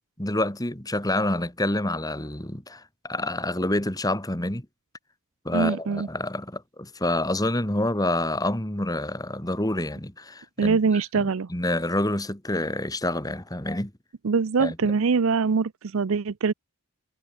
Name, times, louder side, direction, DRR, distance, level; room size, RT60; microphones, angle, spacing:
voice 1, 0.2-4.7 5.4-10.8 11.2-13.9 14.6-14.8, left 1 dB, 15° left, 2.4 m, -27 dB
voice 2, 5.5-6.1 10.6-11.5 14.2-16.5, right 5 dB, 70° right, 0.5 m, -23 dB
head